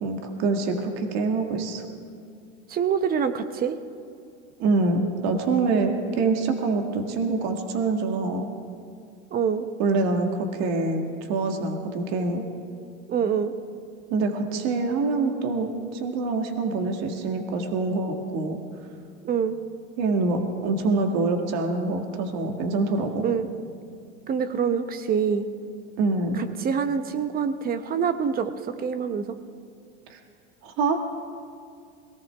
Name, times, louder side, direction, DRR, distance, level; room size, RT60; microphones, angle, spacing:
voice 1, 0.0-1.8 4.6-8.5 9.8-12.4 14.1-15.7 15.9-18.6 20.0-23.2 26.0-26.4 30.1-30.2 30.6-31.0, right 3 dB, 50° right, 4 dB, 1.8 m, -25 dB
voice 2, 2.7-3.8 9.3-9.7 13.1-13.5 19.2-19.6 23.2-23.5 24.3-25.5 26.3-29.4, right 7 dB, 25° right, 10 dB, 0.9 m, -25 dB
22.0 x 18.0 x 3.5 m, 2.3 s
supercardioid pair, 125°, 35 cm